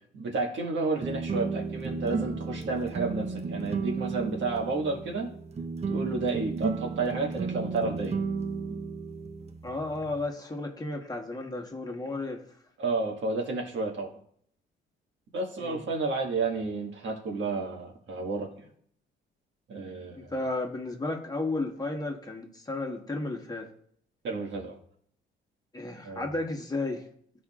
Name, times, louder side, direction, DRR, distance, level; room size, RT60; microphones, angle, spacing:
voice 1, 0.1-5.3 5.9-8.2 12.8-14.2 15.3-18.7 19.7-20.3 24.2-24.8 26.0-26.3, right 3 dB, 70° right, 0 dB, 1.7 m, -31 dB
sound 1, 1.0-10.3, right 4 dB, 30° right, 0.7 m, -34 dB
voice 2, 9.6-12.5 15.6-15.8 20.2-23.7 25.7-27.1, left 2 dB, 20° left, 2 dB, 1.3 m, -33 dB
13.0 x 5.0 x 2.5 m, 0.63 s
cardioid pair, 90°, 20 cm